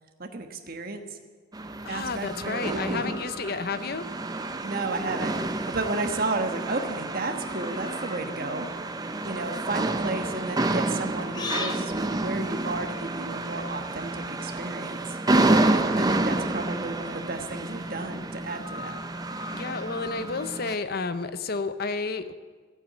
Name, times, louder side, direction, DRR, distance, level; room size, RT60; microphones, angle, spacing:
voice 1, 0.2-1.0 1.9-3.1 4.6-8.7 9.2-15.0 15.7-19.0, right 2 dB, 50° right, 5 dB, 1.3 m, -33 dB
sound 1, 1.5-20.7, right 2 dB, 20° right, 0.6 m, -29 dB
voice 2, 1.8-4.0 19.5-22.3, left 4 dB, 55° left, 12 dB, 0.7 m, -31 dB
sound 2, 7.4-8.3 9.2-9.5 11.3-11.8, left 4 dB, 20° left, 1.0 m, -36 dB
14.5 x 8.9 x 8.4 m, 1.5 s
head